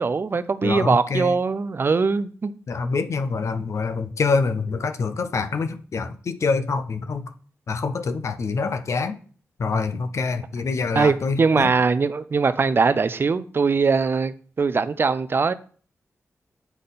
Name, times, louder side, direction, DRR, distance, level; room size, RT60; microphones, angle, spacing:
voice 1, 0.0-2.5 10.9-15.5, right 4 dB, 45° right, 0.4 m, -21 dB
voice 2, 0.6-1.3 2.7-7.3 7.7-9.2 9.6-11.7, left 4 dB, 65° left, 0.6 m, -25 dB
8.2 x 3.7 x 3.9 m
wide cardioid pair, 90°, 5 cm